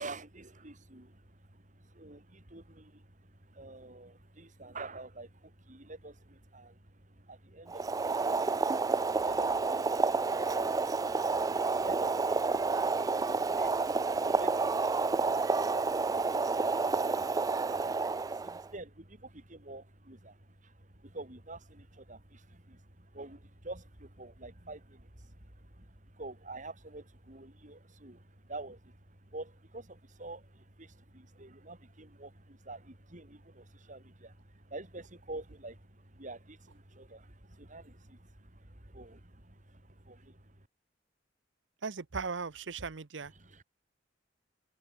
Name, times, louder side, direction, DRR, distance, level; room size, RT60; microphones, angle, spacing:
voice 1, 0.0-40.6 43.3-43.6, right 2 dB, 45° right, 3.8 m, -48 dB
Boiling, 7.7-18.7, right 4 dB, 20° right, 0.3 m, -30 dB
voice 2, 41.8-43.3, right 5 dB, 80° right, 0.9 m, -37 dB
open air
head